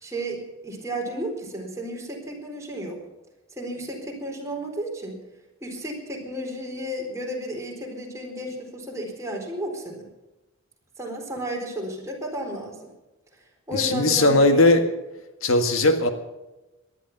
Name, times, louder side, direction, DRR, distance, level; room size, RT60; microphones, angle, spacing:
voice 1, 0.0-3.0 3.6-5.2 5.6-10.1 11.0-12.9 13.7-14.6, right 1 dB, 15° right, 0 dB, 4.2 m, -33 dB
voice 2, 13.7-14.8 15.4-16.1, left 2 dB, 75° left, 7 dB, 1.8 m, -18 dB
18.5 x 12.5 x 6.0 m, 1.0 s
head